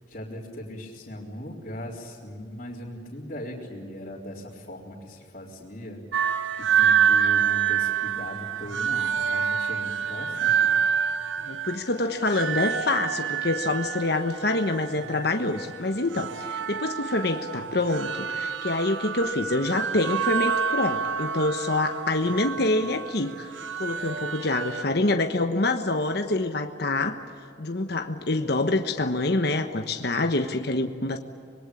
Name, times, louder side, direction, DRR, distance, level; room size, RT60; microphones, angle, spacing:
voice 1, 0.1-6.0 6.7-10.8, equal, 40° left, -7 dB, 4.1 m, -39 dB
sound 1, 6.1-24.8, right 8 dB, 85° right, 1.1 m, -27 dB
voice 2, 11.4-23.5 23.8-27.2 27.6-31.2, left 2 dB, 55° left, 6 dB, 1.3 m, -26 dB
25.5 x 22.0 x 8.6 m, 2.4 s
head